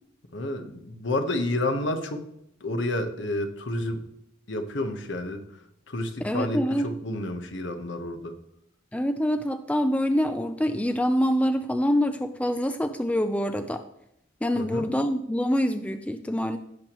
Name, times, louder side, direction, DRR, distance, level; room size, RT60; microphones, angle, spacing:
voice 1, 0.3-2.2 2.6-4.0 4.5-5.4 5.9-8.4 14.5-14.9, left 1 dB, 60° left, 6 dB, 1.1 m, -30 dB
voice 2, 6.2-6.9 8.9-13.8 14.4-16.6, equal, 5° left, 8 dB, 0.4 m, -25 dB
16.0 x 6.9 x 3.0 m, 0.79 s
head